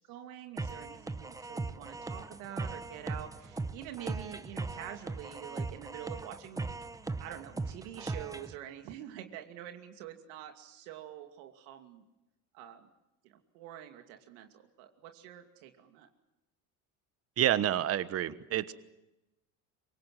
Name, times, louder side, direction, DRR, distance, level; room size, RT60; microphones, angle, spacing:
voice 1, 0.0-6.7 7.2-12.0 12.5-12.9 13.2-16.1, right 11 dB, 90° right, 5 dB, 2.6 m, -46 dB
sound 1, 0.6-8.6, right 3 dB, 10° right, 0.8 m, -39 dB
voice 2, 17.4-18.7, right 11 dB, 40° right, 14 dB, 1.3 m, -28 dB
25.5 x 23.0 x 7.7 m, 0.95 s
cardioid pair, 145°, 38 cm